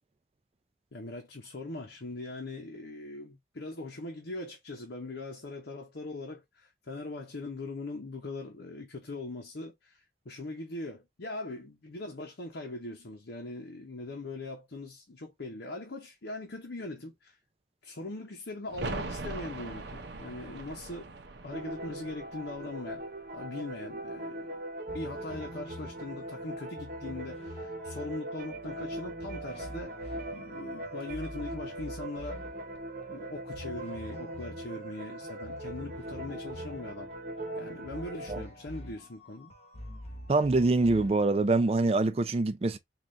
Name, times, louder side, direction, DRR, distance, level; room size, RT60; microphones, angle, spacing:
voice 1, 0.9-17.4 17.8-21.1 21.4-23.0 23.3-24.6 24.9-32.4 33.1-37.1 37.6-39.5, left 2 dB, 85° left, 0.8 m, -41 dB
sound 1, 18.7-24.3 24.5-24.6, right 3 dB, 80° right, 0.7 m, -41 dB
sound 2, 21.5-38.5, right 1 dB, 50° right, 0.8 m, -41 dB
sound 3, 24.9-42.1, left 1 dB, 35° left, 0.8 m, -47 dB
voice 2, 40.3-42.8, right 3 dB, 35° right, 0.4 m, -25 dB
3.9 x 2.4 x 3.1 m
head